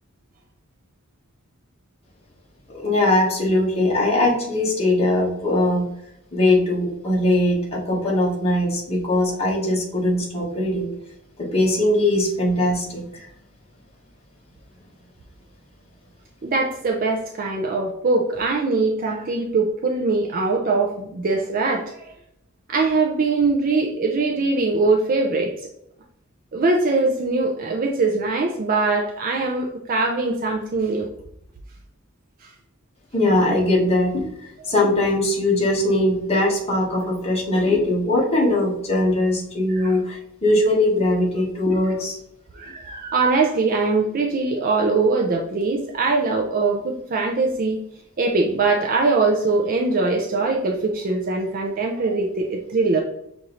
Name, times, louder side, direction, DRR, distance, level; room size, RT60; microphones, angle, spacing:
voice 1, 2.7-5.9 6.3-10.9 11.4-13.2 33.1-34.2 34.6-42.2, left 1 dB, 30° left, -4 dB, 1.2 m, -20 dB
voice 2, 16.4-22.1 22.7-25.5 26.5-31.1 32.4-32.5 39.7-40.0 41.8-41.9 42.5-47.8 48.2-53.0, right 3 dB, 40° right, 1 dB, 0.5 m, -22 dB
6.2 x 2.6 x 2.9 m, 0.77 s
head